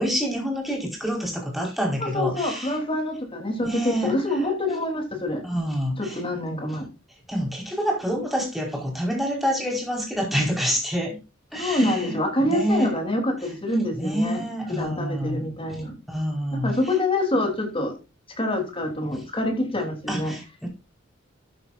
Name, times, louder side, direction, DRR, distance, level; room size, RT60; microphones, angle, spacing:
voice 1, 0.0-2.8 3.6-4.1 5.4-6.2 7.3-11.2 11.5-12.2 12.4-12.9 14.0-15.4 16.1-16.8 20.1-20.7, equal, ahead, 4.7 m, -27 dB
voice 2, 2.0-5.4 6.0-6.9 11.6-14.4 14.7-15.9 16.5-17.9 18.4-20.3, left 1 dB, 25° left, 3.1 m, -26 dB
13.0 x 8.5 x 2.6 m
head